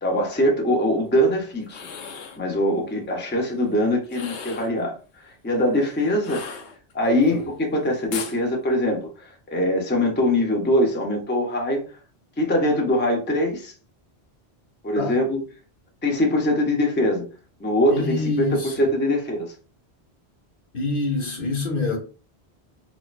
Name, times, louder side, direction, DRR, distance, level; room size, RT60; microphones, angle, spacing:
voice 1, 0.0-1.8 2.4-4.9 5.2-6.4 6.9-11.8 12.4-13.7 14.8-15.4 16.0-17.3 17.6-19.5, left 1 dB, 10° left, 0.6 m, -22 dB
sound 1, 1.6-2.4 4.0-4.8 6.2-7.1 8.1-8.4, left 6 dB, 90° left, 0.9 m, -36 dB
voice 2, 17.9-18.8 20.7-22.0, left 3 dB, 55° left, 1.0 m, -26 dB
4.1 x 2.4 x 2.4 m
omnidirectional pair, 1.1 m